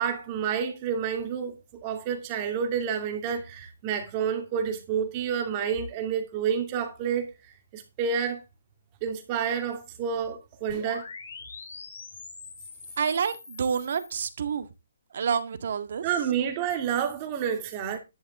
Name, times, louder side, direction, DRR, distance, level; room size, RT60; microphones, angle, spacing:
voice 1, 0.0-1.5 1.8-7.3 7.7-8.4 9.0-11.1 16.0-18.0, right 7 dB, 25° right, 2.6 m, -29 dB
sound 1, 10.7-14.3, left 5 dB, 60° left, 4.6 m, -44 dB
voice 2, 13.0-14.7 15.1-16.0, right 6 dB, 55° right, 1.8 m, -28 dB
11.5 x 10.5 x 3.7 m
hypercardioid pair, 170°, 0 cm